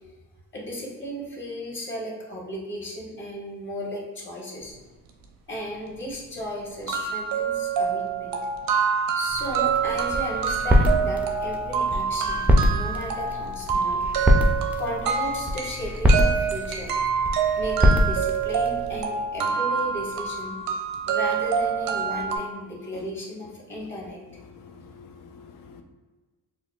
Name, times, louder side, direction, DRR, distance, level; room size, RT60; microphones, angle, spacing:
voice 1, 0.5-4.9 5.5-8.4 8.8-8.9 9.1-14.0 14.8-16.9 17.6-20.6 21.1-24.2, equal, 35° left, -4 dB, 1.1 m, -35 dB
sound 1, 5.9-6.0 6.4-6.5 6.9-22.4, right 6 dB, 80° right, 0.6 m, -26 dB
sound 2, 9.3-19.0, equal, 5° right, 0.3 m, -24 dB
voice 2, 24.5-25.8, left 5 dB, 75° left, 5 dB, 0.5 m, -47 dB
5.6 x 2.2 x 2.3 m, 1.3 s
cardioid pair, 115°, 33 cm